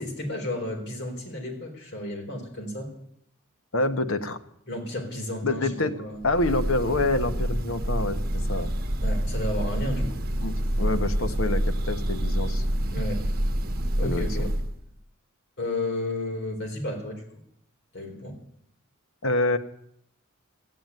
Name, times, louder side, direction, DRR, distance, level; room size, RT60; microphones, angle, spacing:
voice 1, 0.0-2.9 4.7-5.7 5.9-6.2 9.0-10.2 12.9-13.2 14.0-14.5 15.6-17.2 17.9-18.4, left 1 dB, 55° left, 1 dB, 3.9 m, -32 dB
voice 2, 3.7-4.4 5.4-5.9 6.2-8.7 10.4-12.7 14.0-14.5 19.2-19.6, left 2 dB, 75° left, 8 dB, 1.2 m, -27 dB
Breathing / Bird, 6.2-14.8, equal, 45° right, 1.2 m, -27 dB
14.0 x 9.1 x 9.4 m, 0.71 s
head